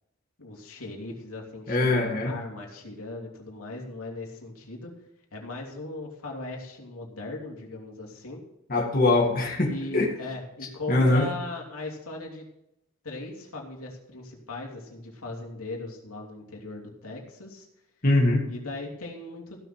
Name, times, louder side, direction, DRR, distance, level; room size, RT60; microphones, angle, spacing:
voice 1, 0.4-4.9 5.3-8.4 9.7-12.4 13.0-17.7 18.5-19.6, left 2 dB, 90° left, 0 dB, 3.1 m, -38 dB
voice 2, 1.7-2.3 8.7-10.1 10.9-11.3 18.0-18.4, left 2 dB, 40° left, -2 dB, 2.3 m, -22 dB
15.5 x 6.8 x 5.9 m, 0.84 s
head